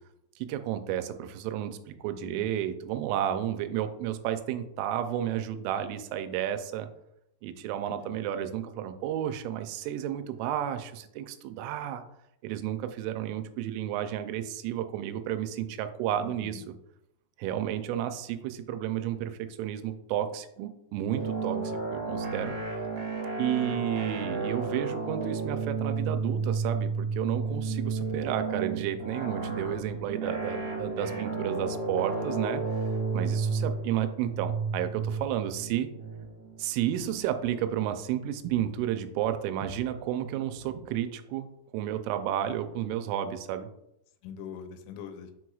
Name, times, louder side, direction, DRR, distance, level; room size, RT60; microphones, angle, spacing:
voice 1, 0.4-6.9 7.4-12.0 12.4-16.6 17.4-21.6 21.9-22.6 23.4-32.8 33.1-35.9 36.6-43.7, right 11 dB, 85° right, 8 dB, 3.1 m, -32 dB
voice 2, 2.1-2.5 7.9-8.2 16.1-16.7 21.6-21.9 27.5-27.8 30.9-31.3 44.2-45.3, left 7 dB, 85° left, 7 dB, 3.2 m, -44 dB
sound 1, 21.1-37.6, right 4 dB, 60° right, 2.3 m, -32 dB
7.9 x 6.1 x 2.3 m, 0.81 s
omnidirectional pair, 5.7 m